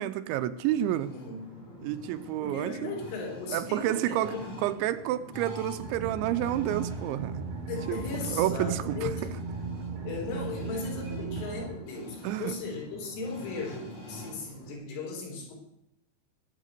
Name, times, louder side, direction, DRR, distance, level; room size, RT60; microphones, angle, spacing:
voice 1, 0.0-1.1 1.8-2.9 3.5-4.3 4.6-7.5 7.9-8.0 8.3-9.1 12.2-12.5, right 13 dB, 80° right, 11 dB, 3.0 m, -29 dB
sound 1, 0.6-14.7, left 1 dB, 40° left, 6.6 m, -45 dB
voice 2, 1.1-1.4 2.4-4.5 7.7-9.3 10.0-15.6, left 4 dB, 85° left, 0 dB, 6.5 m, -37 dB
sound 2, 5.8-11.7, right 5 dB, 60° right, 3.9 m, -36 dB
20.0 x 8.3 x 6.7 m, 0.80 s
omnidirectional pair, 5.4 m